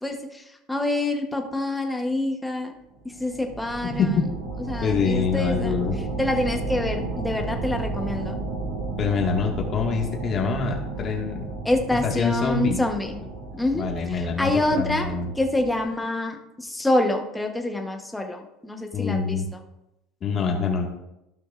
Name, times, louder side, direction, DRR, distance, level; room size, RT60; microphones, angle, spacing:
voice 1, 0.0-2.7 3.2-4.2 4.7-5.7 6.2-8.4 11.6-13.2 13.6-15.1 15.4-19.4, left 1 dB, 5° left, 3 dB, 1.0 m, -26 dB
sound 1, 3.0-15.8, right 3 dB, 45° right, 2.6 m, -33 dB
voice 2, 3.8-4.3 4.8-5.9 9.0-11.5 12.0-12.8 13.7-14.5 14.8-15.3 18.9-19.5 20.2-20.9, left 5 dB, 30° left, 1 dB, 1.7 m, -25 dB
15.0 x 6.1 x 2.5 m, 0.88 s
cardioid pair, 150°, 0 cm